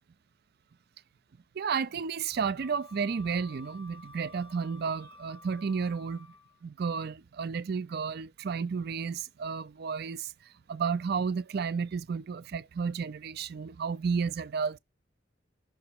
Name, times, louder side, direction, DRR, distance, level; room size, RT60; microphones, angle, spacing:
voice 1, 1.6-6.3 6.6-10.3 10.7-14.8, right 5 dB, 55° right, 0.4 m, -32 dB
Wind instrument woodwind instrument, 2.6-6.6, left 2 dB, 30° left, 0.9 m, -52 dB
6.1 x 3.3 x 4.6 m
head